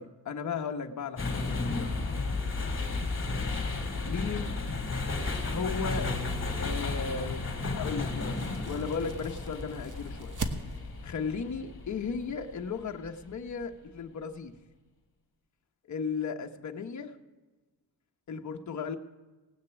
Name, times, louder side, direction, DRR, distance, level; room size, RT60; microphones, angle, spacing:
voice 1, 0.0-1.9 4.0-4.6 5.4-6.1 6.6-8.4 8.7-10.4 11.0-14.5 15.8-17.2 18.3-19.0, left 5 dB, 50° left, 5 dB, 1.0 m, -35 dB
sound 1, 1.2-13.2, left 3 dB, 30° left, 2.6 m, -33 dB
sound 2, 5.5-11.1, right 3 dB, 50° right, 1.2 m, -43 dB
Bass guitar, 5.9-10.4 11.2-12.2, left 3 dB, ahead, 1.9 m, -46 dB
18.0 x 6.6 x 8.1 m, 1.2 s
cardioid pair, 100°, 38 cm